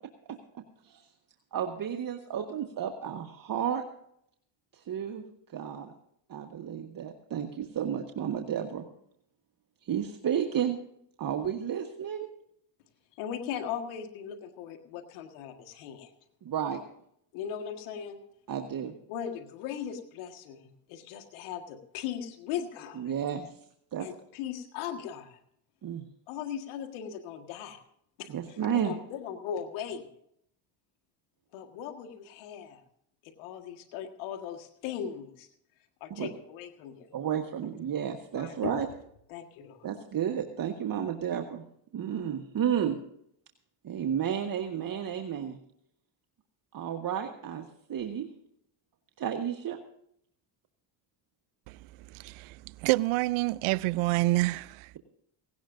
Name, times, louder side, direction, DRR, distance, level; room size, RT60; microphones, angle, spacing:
voice 1, 1.5-3.8 4.7-5.2 5.5-5.9 6.3-8.8 9.8-10.8 11.2-12.3 16.4-16.8 18.5-18.9 23.0-23.5 23.9-24.1 25.8-26.0 28.3-28.9 36.1-36.3 37.1-38.9 39.8-41.6 41.9-43.0 43.8-45.6 46.7-48.3 49.2-49.8, right 9 dB, 45° right, 1.5 m, -32 dB
voice 2, 13.1-16.1 17.3-18.2 19.1-23.1 24.0-25.4 26.3-27.8 28.2-30.1 31.5-32.8 33.2-35.5 36.0-37.1 38.3-38.8 39.3-39.9, left 8 dB, 85° left, 1.8 m, -38 dB
voice 3, 52.1-55.0, right 20 dB, 80° right, 0.6 m, -28 dB
17.5 x 17.5 x 2.6 m
supercardioid pair, 90°, 48 cm